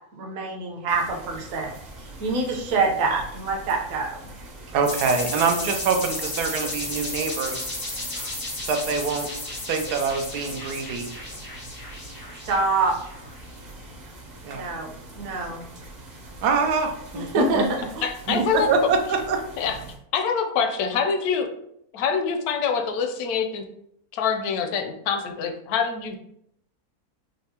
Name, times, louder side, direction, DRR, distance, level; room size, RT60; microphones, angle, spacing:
voice 1, 0.1-1.7 2.0-4.1 12.4-12.9 14.5-15.7 17.1-18.0, right 3 dB, 60° right, 0 dB, 1.1 m, -25 dB
sound 1, 0.9-20.0, right 2 dB, 40° right, 0.6 m, -43 dB
voice 2, 4.7-7.7 8.2-8.3 8.7-9.3 9.7-11.1 14.4-14.6 16.4-17.6 18.3-19.4, right 5 dB, 90° right, 4 dB, 1.2 m, -25 dB
sound 2, 4.8-13.4, left 1 dB, 35° left, 0.3 m, -33 dB
voice 3, 18.0-18.7 19.6-19.8 20.1-21.5 21.9-23.6 24.1-26.2, left 6 dB, 75° left, 6 dB, 1.0 m, -25 dB
5.3 x 2.0 x 2.8 m, 0.74 s
omnidirectional pair, 1.6 m